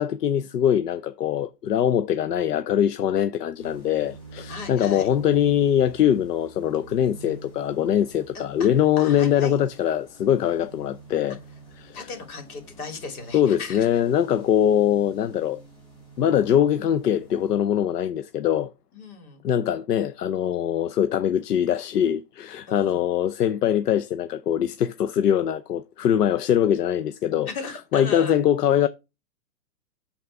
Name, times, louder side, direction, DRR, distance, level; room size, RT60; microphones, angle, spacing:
voice 1, 0.0-11.4 11.8-12.1 13.3-15.6 16.2-18.7 19.4-27.5 27.9-28.9, left 10 dB, 85° left, 0.8 m, -22 dB
sound 1, 3.6-17.6, right 3 dB, 10° left, 3.2 m, -47 dB
voice 2, 4.5-5.1 8.3-8.7 9.0-9.6 11.9-13.9 18.9-19.4 22.7-23.0 27.5-28.4, left 4 dB, 65° left, 3.1 m, -36 dB
8.1 x 4.1 x 4.7 m
hypercardioid pair, 160°, 46 cm